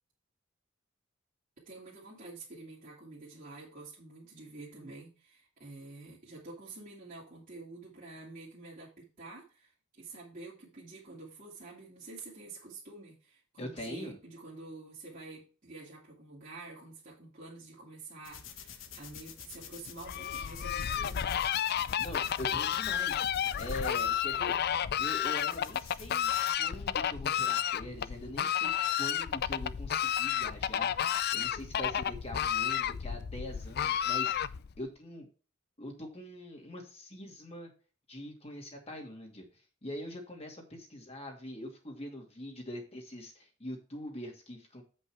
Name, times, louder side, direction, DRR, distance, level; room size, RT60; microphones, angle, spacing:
voice 1, 1.7-21.2, right 3 dB, 45° right, -6 dB, 2.4 m, -48 dB
voice 2, 13.6-14.2 22.0-24.6 25.0-26.3 26.6-35.3 35.8-37.7 38.1-39.5 39.8-44.8, left 1 dB, 30° left, 2 dB, 2.4 m, -43 dB
sound 1, 18.2-26.5, left 7 dB, 70° left, 1.2 m, -49 dB
Fowl, 20.0-34.8, left 9 dB, 55° left, 0.4 m, -31 dB
8.2 x 5.4 x 4.7 m, 0.36 s
head